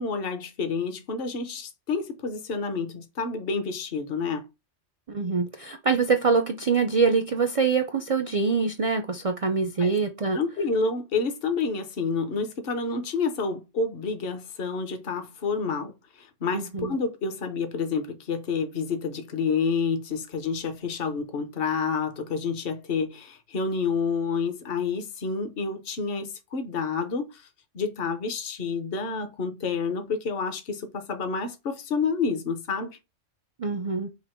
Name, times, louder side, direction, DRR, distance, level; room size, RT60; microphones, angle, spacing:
voice 1, 0.0-4.5 9.8-9.9 10.3-27.5 27.7-33.0, left 5 dB, 50° left, 1.0 m, -29 dB
voice 2, 5.1-10.4 16.5-16.9 33.6-34.1, right 4 dB, 60° right, 0.3 m, -24 dB
5.6 x 2.1 x 4.3 m
omnidirectional pair, 1.3 m